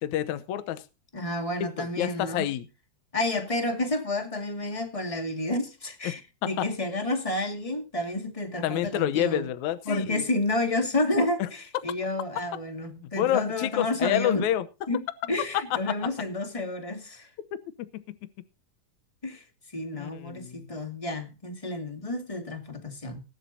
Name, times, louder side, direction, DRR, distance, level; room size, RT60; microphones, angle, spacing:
voice 1, 0.0-0.8 1.8-2.7 6.0-6.1 6.6-6.7 8.6-10.2 11.4-11.5 13.2-14.6 17.8-18.2 19.9-20.7, left 12 dB, 70° left, 2.1 m, -28 dB
voice 2, 1.1-2.5 3.1-9.5 9.8-14.5 14.9-17.3 19.2-19.4 19.7-23.2, left 2 dB, 15° left, 1.4 m, -30 dB
19.5 x 11.5 x 2.7 m
omnidirectional pair, 3.8 m